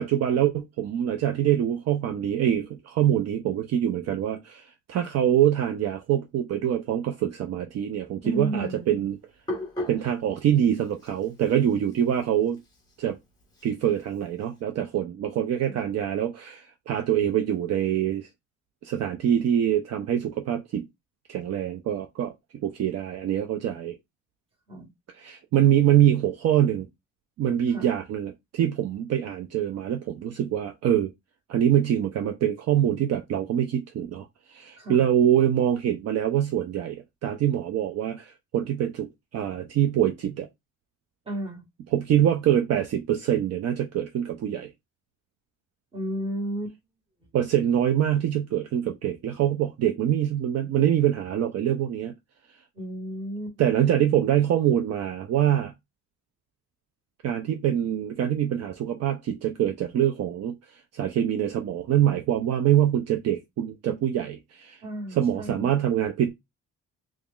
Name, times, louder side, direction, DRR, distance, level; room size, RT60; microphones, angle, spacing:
voice 1, 0.0-4.6 4.9-9.2 9.9-12.6 13.0-13.2 13.6-18.3 18.8-20.8 21.3-24.0 25.1-26.9 27.4-31.1 31.5-40.5 41.9-44.7 47.3-52.1 53.6-55.7 57.2-60.5 60.9-64.8 65.1-66.3, right 10 dB, 55° right, 0.5 m, -24 dB
voice 2, 8.2-9.1 15.7-15.8 24.7-24.9 27.7-27.9 34.8-35.0 41.3-41.6 45.9-46.8 52.7-53.5 64.8-65.8, equal, 20° right, 1.2 m, -33 dB
Hands, 8.7-14.6, left 1 dB, 15° left, 1.1 m, -40 dB
3.1 x 2.3 x 3.6 m
cardioid pair, 170°, 31 cm